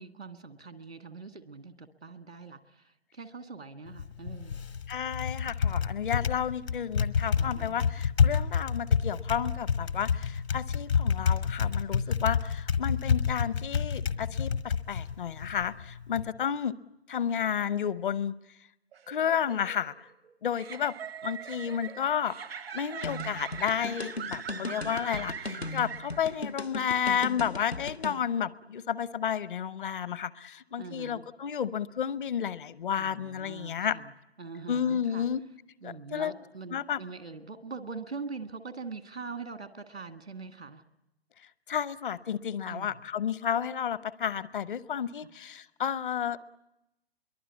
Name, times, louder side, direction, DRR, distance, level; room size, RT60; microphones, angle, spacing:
voice 1, 0.0-4.6 7.4-7.9 30.8-31.2 33.0-34.1 34.4-35.3 35.8-40.8 42.7-43.0, right 4 dB, 85° right, 9 dB, 1.8 m, -43 dB
Typing, 3.9-16.3, left 6 dB, 75° left, 1.5 m, -29 dB
voice 2, 4.9-16.7 17.1-18.4 19.1-20.1 20.4-21.0 21.2-34.0 34.7-35.4 35.8-36.3 36.7-37.0 41.7-46.4, left 8 dB, 55° left, 18 dB, 0.8 m, -31 dB
sound 1, 18.9-26.5, right 7 dB, 70° right, 0.8 m, -42 dB
sound 2, 23.0-28.2, left 2 dB, 90° left, 1.2 m, -37 dB
25.5 x 23.0 x 8.4 m, 0.92 s
figure-of-eight pair, 125°, 31 cm